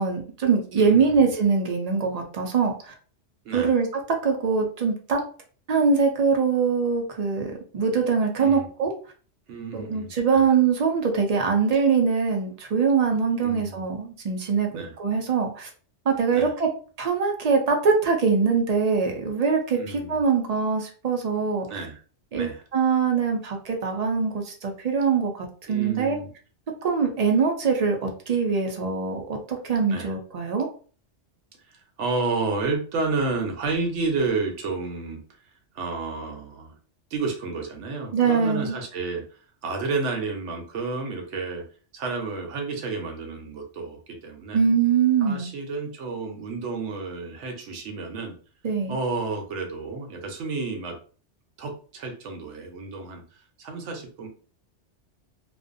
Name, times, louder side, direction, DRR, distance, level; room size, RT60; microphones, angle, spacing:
voice 1, 0.0-2.9 3.5-5.2 5.7-8.9 9.7-15.7 16.1-16.7 17.0-21.8 22.3-26.2 26.8-30.7 38.1-38.8 44.5-45.5 48.6-49.0, right 5 dB, 60° right, 2 dB, 0.4 m, -23 dB
voice 2, 0.8-1.2 3.4-3.7 8.4-8.7 9.5-10.4 13.4-13.9 14.7-14.9 16.3-16.5 19.7-20.2 21.7-22.0 22.3-22.6 25.7-26.3 29.9-30.1 31.7-35.2 35.7-36.7 37.1-41.6 41.9-44.6 45.2-48.4 48.9-51.0 51.6-54.3, right 3 dB, 80° right, 4 dB, 0.9 m, -31 dB
2.4 x 2.2 x 2.5 m, 0.40 s
omnidirectional pair, 1.2 m